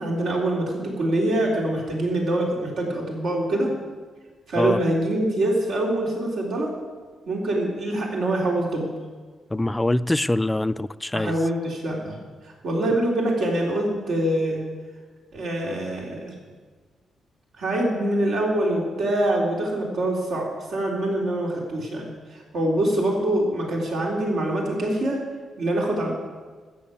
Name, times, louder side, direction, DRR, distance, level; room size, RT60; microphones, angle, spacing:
voice 1, 0.0-3.7 4.5-6.7 7.3-8.9 11.1-12.2 12.4-14.6 15.3-16.3 17.6-25.2 25.6-26.1, right 1 dB, 70° right, -2 dB, 3.8 m, -24 dB
voice 2, 9.5-11.3, left 1 dB, 10° left, 16 dB, 0.3 m, -23 dB
13.5 x 7.5 x 8.6 m, 1.5 s
cardioid pair, 145°, 0 cm